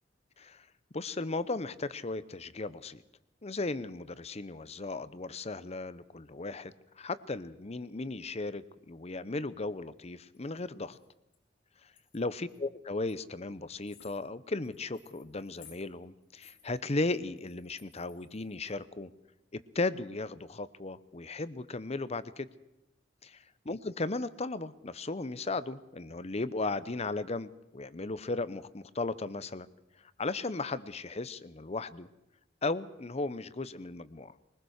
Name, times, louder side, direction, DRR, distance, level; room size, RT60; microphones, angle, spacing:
voice 1, 0.9-3.0 3.4-11.0 12.1-19.1 19.5-22.5 23.2-23.4 23.6-29.7 30.2-32.1 32.6-34.3, left 3 dB, 35° left, 16 dB, 0.8 m, -36 dB
sound 1, 10.3-10.6 10.9-11.4 11.9-12.6 13.1-13.2 13.5-13.6 13.8-18.7, left 7 dB, 80° left, 3.9 m, -59 dB
22.5 x 20.5 x 6.5 m, 0.89 s
head